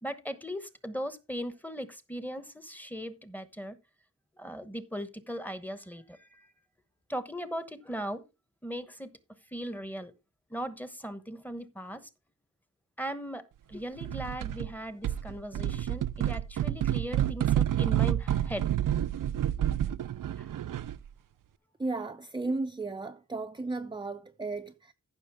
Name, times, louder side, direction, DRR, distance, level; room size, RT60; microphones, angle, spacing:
voice 1, 0.0-3.8 4.4-6.5 7.1-8.2 8.6-9.1 9.5-10.1 10.5-12.1 13.0-13.4 13.7-18.7 20.4-20.5, equal, 5° left, 1.1 m, -38 dB
sound 1, 14.0-14.7 15.0-21.1, right 11 dB, 80° right, 0.5 m, -29 dB
voice 2, 21.8-24.9, right 3 dB, 15° right, 0.6 m, -34 dB
14.5 x 6.4 x 3.5 m
wide cardioid pair, 180°, 31 cm